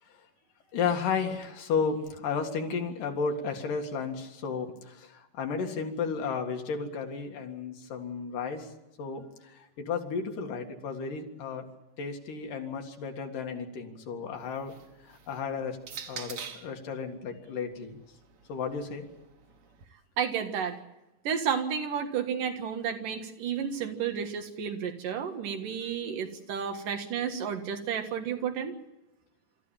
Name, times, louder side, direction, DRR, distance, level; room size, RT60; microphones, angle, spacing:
voice 1, 0.7-8.7 9.0-11.7 12.0-14.7 15.0-15.8 16.1-18.0 18.5-19.1, left 5 dB, 85° left, 3 dB, 3.7 m, -33 dB
sound 1, 14.3-16.8 17.7-19.8, right 7 dB, 55° right, 2.1 m, -46 dB
voice 2, 20.2-20.8 21.2-28.7, right 7 dB, 90° right, 6 dB, 3.3 m, -32 dB
26.0 x 14.0 x 8.9 m, 1.0 s
omnidirectional pair, 3.7 m